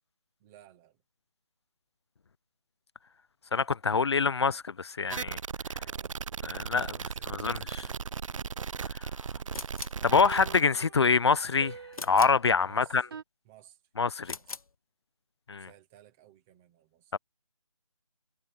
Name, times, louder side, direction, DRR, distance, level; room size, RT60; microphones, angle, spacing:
voice 1, 0.4-1.0 5.7-6.2 6.8-8.0 9.3-9.6 12.6-13.1 13.4-13.8 14.3-14.6 15.6-17.2, right 12 dB, ahead, 0.4 m, -58 dB
voice 2, 3.5-5.4 6.4-6.9 7.3-7.8 10.0-11.8 12.0-13.0 14.0-14.4 15.5-15.7 17.1-17.2, left 5 dB, 50° left, 0.6 m, -25 dB
sound 1, 5.1-10.6, right 6 dB, 65° right, 0.4 m, -37 dB
sound 2, 5.9-6.0 10.1-13.2, right 6 dB, 40° right, 4.1 m, -45 dB
sound 3, 9.5-10.1 11.9-12.5 14.2-14.8, left 4 dB, 75° left, 1.7 m, -41 dB
figure-of-eight pair, 165°, 18 cm